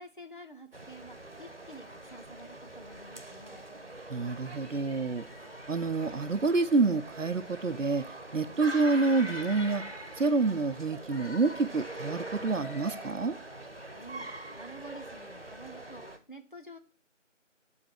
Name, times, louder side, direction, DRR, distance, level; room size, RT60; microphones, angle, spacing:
voice 1, 0.0-3.7 13.9-16.8, right 1 dB, 40° left, 1.1 m, -49 dB
sound 1, 0.7-16.2, right 1 dB, 50° right, 1.4 m, -43 dB
voice 2, 4.1-5.3 5.7-8.1 8.3-9.8 10.2-13.4, right 3 dB, 75° right, 0.7 m, -28 dB
7.8 x 3.6 x 6.3 m
figure-of-eight pair, 175°, 38 cm